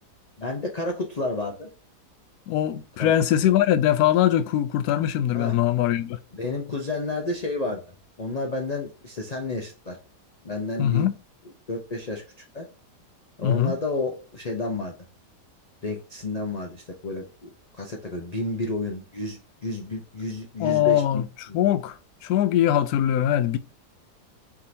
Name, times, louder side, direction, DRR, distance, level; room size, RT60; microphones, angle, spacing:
voice 1, 0.4-1.7 3.0-3.5 5.3-5.6 6.3-7.8 8.2-10.0 10.4-11.1 11.7-12.2 12.5-12.7 13.4-14.9 15.8-17.5 17.8-21.6, left 2 dB, 50° left, 0.5 m, -31 dB
voice 2, 2.5-6.2 10.8-11.1 13.4-13.7 20.6-22.0 22.2-23.6, left 11 dB, 70° left, 1.0 m, -22 dB
4.6 x 3.7 x 2.7 m
omnidirectional pair, 1.8 m